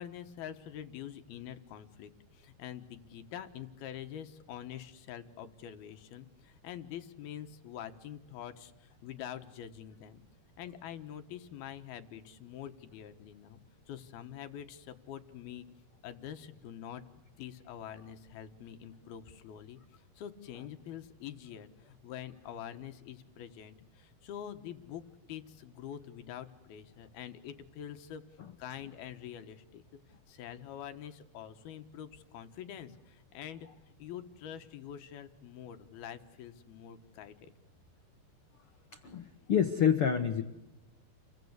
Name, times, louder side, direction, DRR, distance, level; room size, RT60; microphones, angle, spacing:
voice 1, 0.0-10.2 10.6-13.6 13.9-15.7 16.0-19.8 20.2-25.0 25.3-28.2 28.6-29.8 30.3-37.5, left 10 dB, 70° left, 8 dB, 3.1 m, -45 dB
voice 2, 38.9-40.4, left 8 dB, 90° left, 7 dB, 1.2 m, -28 dB
29.5 x 22.0 x 8.2 m, 0.94 s
omnidirectional pair, 4.8 m